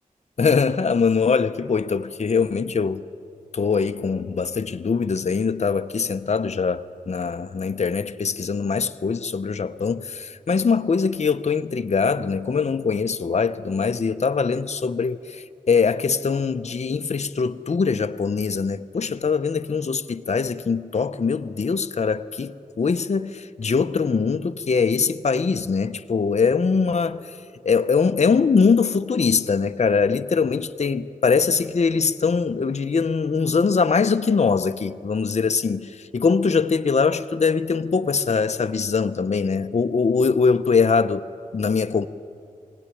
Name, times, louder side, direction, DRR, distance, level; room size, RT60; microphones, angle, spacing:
voice 1, 0.4-3.0 3.5-27.2 27.6-41.2 41.5-42.1, left 5 dB, 50° left, 0.7 m, -22 dB
21.5 x 17.0 x 9.8 m
wide cardioid pair, 65°, 15 cm